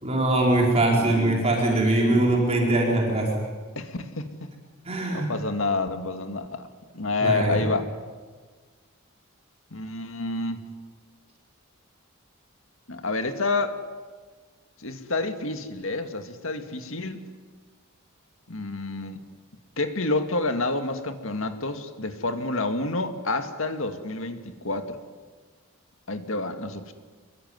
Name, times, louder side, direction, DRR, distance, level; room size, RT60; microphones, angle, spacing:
voice 1, 0.0-3.3 4.9-5.3 7.2-7.6, right 2 dB, 30° right, -1 dB, 4.5 m, -22 dB
voice 2, 0.9-2.3 3.8-4.5 5.1-6.7 6.9-7.8 9.7-10.6 12.9-13.8 14.8-17.3 18.5-19.3 19.8-25.0 26.1-26.9, left 2 dB, 65° left, 7 dB, 2.1 m, -29 dB
26.5 x 22.0 x 9.6 m, 1.5 s
head